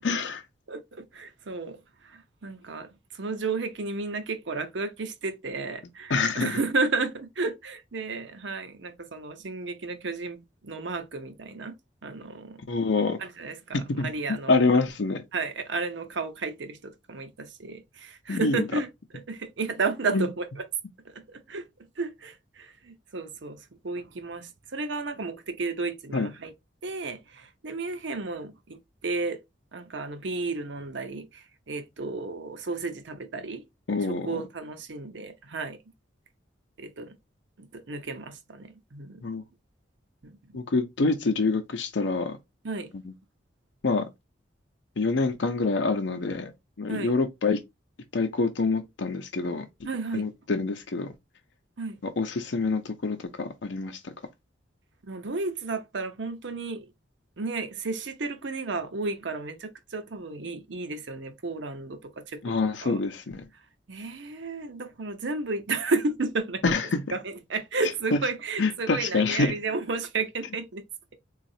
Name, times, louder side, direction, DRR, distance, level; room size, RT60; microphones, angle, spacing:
voice 1, 0.0-0.4 6.1-6.6 12.7-13.2 13.7-14.1 14.5-15.2 18.3-18.6 20.1-20.3 26.1-26.3 33.9-34.4 39.2-39.4 40.5-42.4 43.8-44.1 45.0-46.5 46.8-47.6 48.1-49.7 50.1-51.1 52.2-54.1 62.4-63.4 66.6-67.0 68.6-69.5, left 3 dB, 70° left, 0.6 m, -26 dB
voice 2, 0.7-11.7 12.0-12.6 13.2-14.6 15.3-18.9 19.1-20.7 21.0-26.5 26.8-29.4 29.7-33.6 34.1-35.8 36.8-37.2 37.6-39.2 40.2-40.6 42.6-42.9 46.9-47.1 49.8-50.3 51.8-52.0 55.1-56.9 57.4-62.5 62.8-63.0 63.9-66.7 67.1-70.8, right 3 dB, 70° right, 0.7 m, -33 dB
4.0 x 2.4 x 2.6 m
head